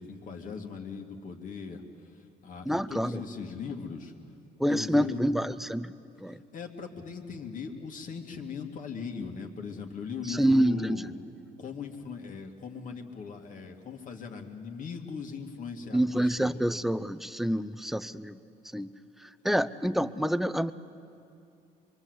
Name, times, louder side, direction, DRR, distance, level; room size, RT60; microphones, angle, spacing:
voice 1, 0.0-4.1 4.7-5.2 6.5-11.2 11.6-16.6, left 5 dB, 50° left, 3 dB, 2.3 m, -39 dB
voice 2, 2.7-3.2 4.6-5.9 6.2-6.4 10.2-11.0 15.9-18.4 18.7-18.9 19.2-20.7, equal, ahead, 14 dB, 0.6 m, -27 dB
25.0 x 23.5 x 8.1 m, 2.6 s
cardioid pair, 110°, 17 cm